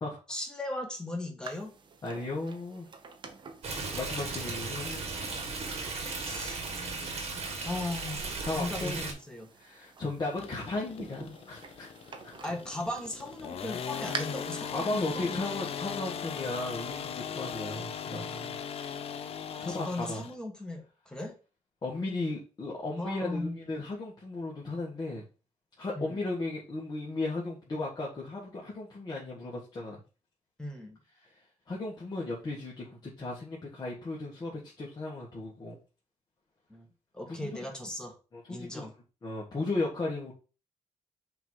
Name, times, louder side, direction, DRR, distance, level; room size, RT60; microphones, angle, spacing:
voice 1, 0.3-1.7 6.1-6.6 7.6-8.2 8.5-9.5 12.4-15.6 19.7-21.4 23.0-23.8 25.9-26.2 30.6-31.0 36.7-36.9 37.1-38.2 38.5-38.9, left 1 dB, 5° left, 2 dB, 1.5 m, -37 dB
sound 1, 1.4-14.2, right 5 dB, 40° right, 0.9 m, -48 dB
voice 2, 2.0-2.9 3.9-5.1 8.5-9.0 9.6-11.9 12.2-12.3 14.7-18.6 19.6-20.2 21.8-25.2 25.8-30.0 31.7-35.8 37.3-37.5 38.3-38.9 39.2-40.3, left 2 dB, 35° left, -4 dB, 1.7 m, -35 dB
Stream, 3.6-9.1, right 3 dB, 65° right, 1.8 m, -36 dB
sound 2, 10.3-20.3, left 7 dB, 55° left, 0.6 m, -39 dB
5.8 x 3.1 x 5.5 m, 0.33 s
cardioid pair, 125°, 12 cm